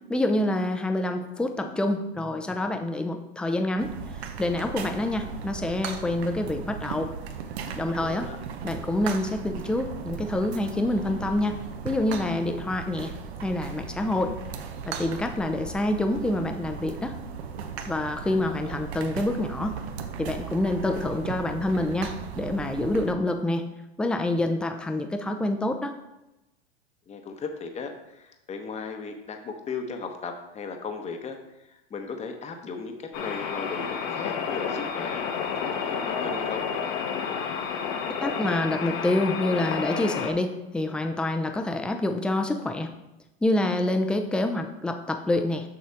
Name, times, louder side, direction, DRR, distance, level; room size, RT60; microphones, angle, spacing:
voice 1, 0.1-3.9 4.4-7.1 7.7-8.3 8.6-11.6 11.8-13.1 13.4-14.4 14.9-17.2 17.9-19.8 20.2-23.6 24.0-25.9 38.2-42.9 43.4-45.7, left 1 dB, 5° left, 6 dB, 0.5 m, -27 dB
sound 1, 3.8-23.2, right 6 dB, 80° right, 0.9 m, -37 dB
voice 2, 8.0-8.4 18.2-18.8 27.1-36.6, left 5 dB, 20° left, 5 dB, 0.9 m, -37 dB
sound 2, 33.1-40.3, left 6 dB, 50° left, 1.0 m, -30 dB
6.7 x 6.3 x 3.5 m, 0.94 s
hypercardioid pair, 110°, 32 cm